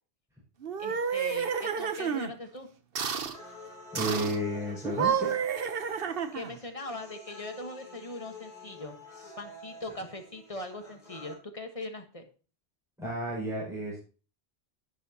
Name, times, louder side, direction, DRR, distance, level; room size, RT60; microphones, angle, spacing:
sound 1, 0.6-2.3 3.0-3.4 4.0-4.4 4.8-6.6, right 7 dB, 60° right, 1.0 m, -30 dB
voice 1, 0.8-2.7 6.3-9.0 9.4-12.3, left 2 dB, 30° left, 5 dB, 1.4 m, -40 dB
sound 2, 3.3-11.3, left 3 dB, 50° left, 3.7 m, -48 dB
voice 2, 3.9-5.3 13.0-14.0, equal, 5° right, -6 dB, 5.1 m, -32 dB
11.0 x 10.0 x 2.8 m, 0.36 s
omnidirectional pair, 1.2 m